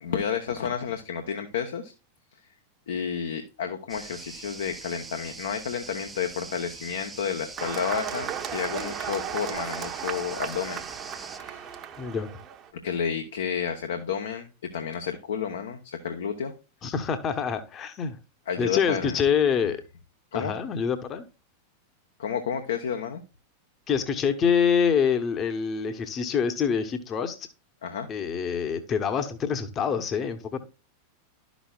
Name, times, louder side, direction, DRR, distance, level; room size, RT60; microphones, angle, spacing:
voice 1, 0.0-1.9 2.9-10.8 11.1-11.8 12.8-14.5 14.7-16.5 18.5-19.1 20.3-20.5 22.2-23.2 27.8-28.1, left 7 dB, 65° left, 0.9 m, -31 dB
sound 1, 3.9-11.4, right 3 dB, 10° right, 0.7 m, -43 dB
sound 2, 7.6-12.7, right 8 dB, 30° right, 1.0 m, -35 dB
voice 2, 12.0-12.3 16.8-18.2 18.6-19.8 20.3-21.2 23.9-27.5 28.1-30.6, left 7 dB, 30° left, 1.0 m, -26 dB
12.0 x 6.2 x 2.4 m
figure-of-eight pair, 90°, 0 cm